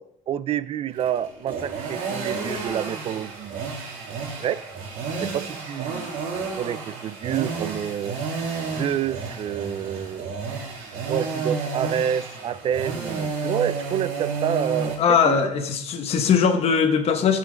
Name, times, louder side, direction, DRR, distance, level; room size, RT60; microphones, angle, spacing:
voice 1, 0.0-3.7 4.4-4.7 5.2-8.2 8.7-10.3 11.1-15.5, right 9 dB, 40° right, 17 dB, 0.4 m, -28 dB
sound 1, 0.9-15.0, right 4 dB, 90° right, 2.5 m, -31 dB
voice 2, 15.0-17.4, left 6 dB, 45° left, 6 dB, 1.0 m, -20 dB
11.0 x 5.7 x 5.1 m, 0.77 s
cardioid pair, 140°, 14 cm